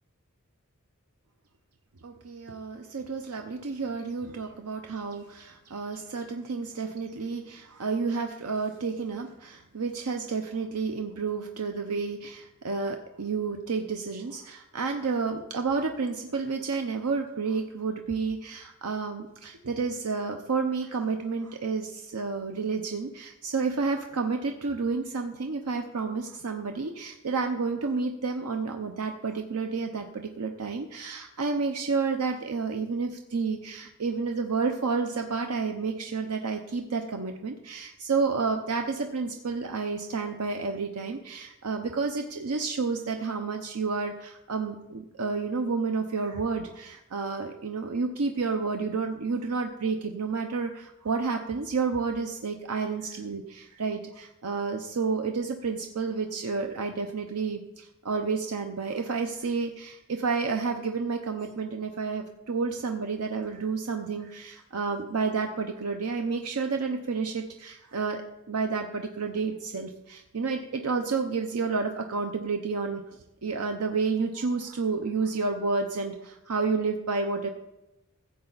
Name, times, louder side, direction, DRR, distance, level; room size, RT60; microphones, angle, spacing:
voice 1, 2.0-68.2 68.5-77.5, right 4 dB, 90° right, 4 dB, 0.7 m, -30 dB
15.0 x 7.8 x 4.0 m, 0.93 s
head